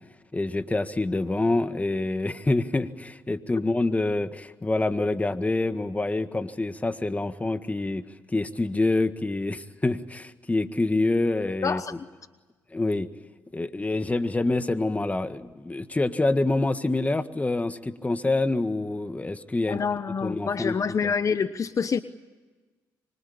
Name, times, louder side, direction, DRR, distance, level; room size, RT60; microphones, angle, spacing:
voice 1, 0.3-12.0 12.7-13.1 13.5-19.8 20.2-20.8 21.0-21.1, left 2 dB, 20° left, 1.7 m, -26 dB
voice 2, 11.6-11.9 19.7-22.0, left 6 dB, 45° left, 1.0 m, -27 dB
25.5 x 24.5 x 8.6 m
supercardioid pair, 65°, 8 cm